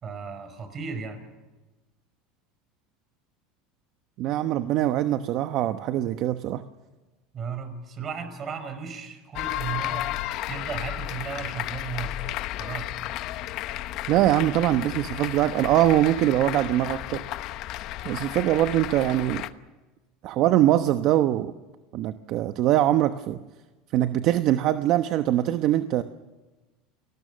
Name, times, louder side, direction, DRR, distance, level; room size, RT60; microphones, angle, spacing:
voice 1, 0.0-1.2 7.3-10.1 10.5-12.3 12.6-13.1, right 6 dB, 35° right, 9 dB, 5.2 m, -35 dB
voice 2, 4.2-6.6 14.1-17.2 18.0-19.4 20.2-21.5 21.9-23.4 23.9-26.0, right 13 dB, 55° right, 9 dB, 1.0 m, -23 dB
sound 1, 9.3-19.5, left 14 dB, 55° left, 1.0 m, -33 dB
29.5 x 19.5 x 6.4 m, 1.2 s
supercardioid pair, 120°, 0 cm